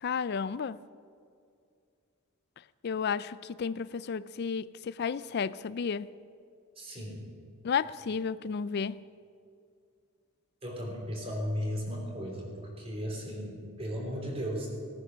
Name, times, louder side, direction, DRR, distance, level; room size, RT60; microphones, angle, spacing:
voice 1, 0.0-0.8 2.8-6.1 7.6-9.0, left 6 dB, 50° left, 0.4 m, -32 dB
voice 2, 6.8-7.2 10.6-14.7, equal, 30° right, 3.4 m, -36 dB
18.5 x 9.9 x 6.3 m
head